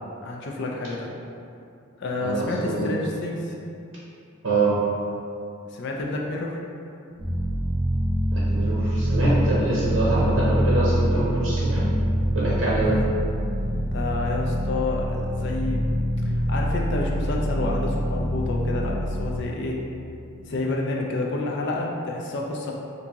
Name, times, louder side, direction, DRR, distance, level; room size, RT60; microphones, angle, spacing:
voice 1, 0.2-1.1 2.0-3.5 5.7-6.6 12.8-13.0 13.9-15.8 16.2-19.8 20.5-22.7, left 2 dB, 55° left, -1 dB, 0.4 m, -29 dB
voice 2, 2.2-2.9 4.4-4.8 8.3-11.9 12.3-13.0, right 2 dB, 65° right, -8 dB, 0.7 m, -24 dB
Drone pad, 7.2-19.4, equal, 15° right, 0.7 m, -25 dB
2.8 x 2.6 x 3.5 m, 2.5 s
head